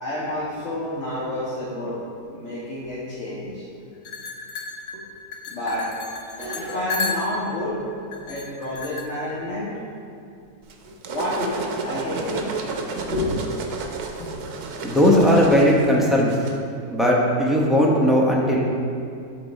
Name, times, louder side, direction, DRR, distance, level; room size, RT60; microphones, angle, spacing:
voice 1, 0.0-2.0 2.3-3.6 4.9-5.0 5.5-5.9 6.5-9.8 10.9-12.5 13.1-13.4 14.2-14.3, left 1 dB, 50° left, -8 dB, 1.5 m, -29 dB
sound 1, 4.0-7.5 8.1-9.0, left 4 dB, 75° left, 1.4 m, -32 dB
sound 2, 6.3-8.3, right 1 dB, 30° right, 2.1 m, -38 dB
sound 3, 10.7-16.6, right 4 dB, 80° right, 1.2 m, -32 dB
voice 2, 14.8-16.3 16.9-18.7, equal, ahead, -4 dB, 0.7 m, -17 dB
11.5 x 3.8 x 4.2 m, 2.4 s
omnidirectional pair, 1.6 m